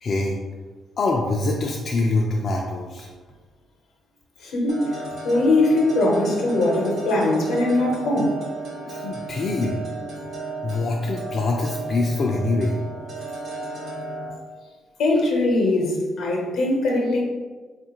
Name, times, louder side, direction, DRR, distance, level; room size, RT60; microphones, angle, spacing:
voice 1, 0.0-0.4 1.0-3.1 8.9-9.8 10.6-12.8, left 2 dB, 50° left, -1 dB, 0.3 m, -24 dB
voice 2, 4.4-8.4 15.0-17.2, left 2 dB, 80° left, 0 dB, 0.8 m, -21 dB
sound 1, 4.7-14.3, right 3 dB, 65° right, 0.8 m, -34 dB
3.4 x 2.4 x 2.9 m, 1.4 s
cardioid pair, 90°, 0 cm